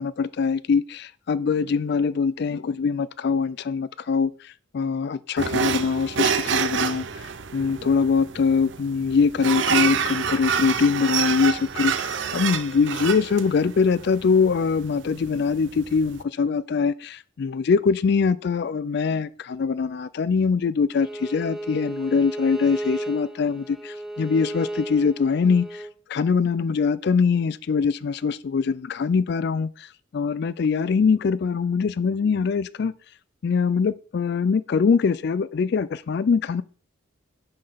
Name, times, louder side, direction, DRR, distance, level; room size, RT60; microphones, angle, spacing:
voice 1, 0.0-25.8 26.1-29.9 30.1-32.9 33.4-36.6, left 5 dB, 50° left, 0.3 m, -23 dB
sound 1, 5.4-16.2, right 7 dB, 60° right, 0.5 m, -28 dB
Bowed string instrument, 20.9-25.9, right 1 dB, ahead, 0.7 m, -34 dB
5.8 x 5.3 x 5.6 m
head